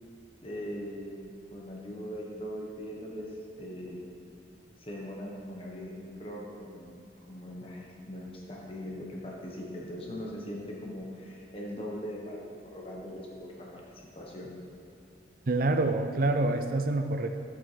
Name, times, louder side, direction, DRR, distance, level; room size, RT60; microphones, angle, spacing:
voice 1, 0.4-3.3 3.5-4.0 4.8-6.9 7.3-12.4 12.7-14.5, equal, 30° left, -3 dB, 1.3 m, -40 dB
voice 2, 15.5-17.4, right 2 dB, 50° right, 7 dB, 0.5 m, -27 dB
11.0 x 7.6 x 3.4 m, 2.4 s
head